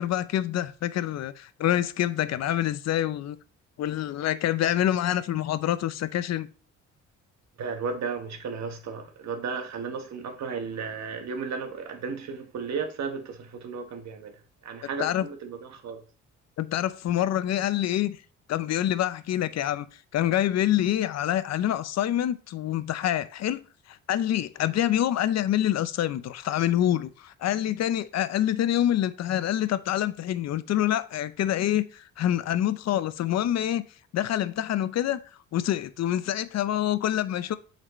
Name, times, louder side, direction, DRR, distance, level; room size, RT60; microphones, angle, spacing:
voice 1, 0.0-3.4 3.8-6.5 15.0-15.3 16.6-18.2 18.5-19.9 20.1-23.6 23.9-33.8 34.1-35.2 35.5-37.6, left 12 dB, 60° left, 0.6 m, -26 dB
voice 2, 7.6-16.0, right 5 dB, 65° right, 1.3 m, -34 dB
7.6 x 4.2 x 3.0 m
cardioid pair, 90°, 30 cm